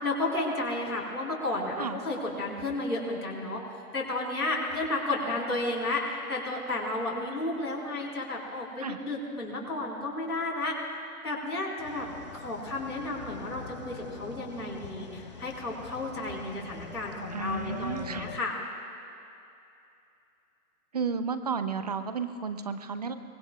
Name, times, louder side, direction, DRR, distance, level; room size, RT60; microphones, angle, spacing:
voice 1, 0.0-3.6 3.9-6.0 6.3-10.7 11.2-12.1 12.3-18.5, left 2 dB, 85° left, -5 dB, 4.3 m, -32 dB
sound 1, 11.8-18.4, left 6 dB, 30° left, 0.5 m, -44 dB
voice 2, 17.3-18.2 20.9-23.1, right 5 dB, 30° right, 10 dB, 0.5 m, -32 dB
23.5 x 21.5 x 2.3 m, 2.7 s
figure-of-eight pair, 125°, 44 cm